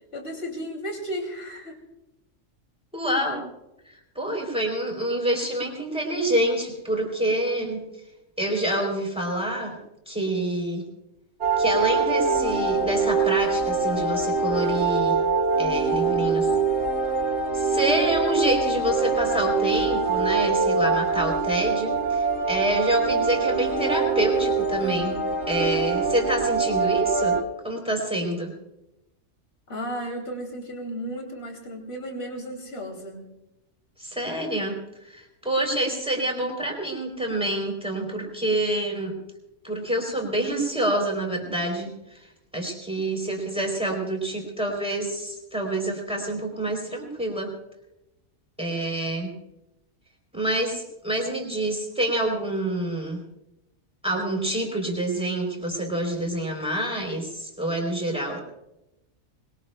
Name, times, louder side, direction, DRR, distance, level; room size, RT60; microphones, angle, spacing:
voice 1, 0.1-1.8 29.7-33.3, equal, 45° left, 2 dB, 3.0 m, -34 dB
voice 2, 2.9-3.4 4.1-7.8 8.4-9.8 10.0-10.9 11.6-15.2 15.6-16.5 17.5-25.2 25.5-28.5 34.0-34.8 35.0-39.2 39.6-42.3 42.5-47.5 48.6-49.3 50.3-53.2 54.0-58.4, right 1 dB, 5° right, 1 dB, 3.4 m, -27 dB
sound 1, 11.4-27.4, right 4 dB, 55° right, 2.2 m, -24 dB
25.0 x 21.0 x 2.2 m, 0.93 s
omnidirectional pair, 1.4 m